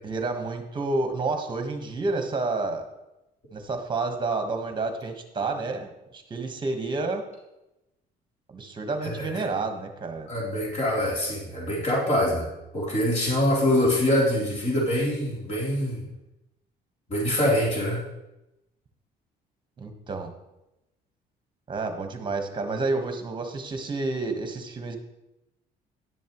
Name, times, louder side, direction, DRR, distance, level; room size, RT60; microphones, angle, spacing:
voice 1, 0.0-2.9 3.5-7.2 8.5-10.3 19.8-20.3 21.7-25.0, right 3 dB, 30° right, 5 dB, 1.3 m, -30 dB
voice 2, 9.0-9.4 10.3-12.5 12.7-16.0 17.1-18.0, left 1 dB, 40° left, -5 dB, 3.5 m, -24 dB
10.5 x 7.1 x 3.1 m, 0.94 s
cardioid pair, 110°, 17 cm